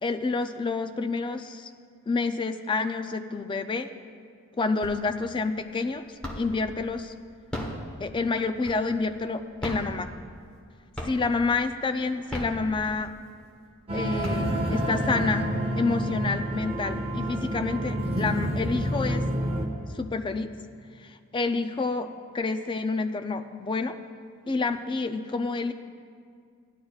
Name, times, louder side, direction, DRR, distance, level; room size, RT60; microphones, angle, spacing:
voice 1, 0.0-1.7 2.1-3.9 4.6-7.1 8.0-10.1 11.0-13.1 13.9-15.5 15.8-19.2 19.9-20.5 21.0-24.0 24.5-25.7, left 3 dB, 20° left, 8 dB, 0.3 m, -28 dB
sound 1, 4.8-5.3 5.7-6.7 7.3-9.1 9.5-10.7 11.0-11.5 12.1-13.2 13.7-13.8 14.0-14.9, equal, 5° left, 1.0 m, -36 dB
sound 2, 13.9-19.7, right 1 dB, 25° right, 1.0 m, -28 dB
15.5 x 10.5 x 2.4 m, 2.2 s
head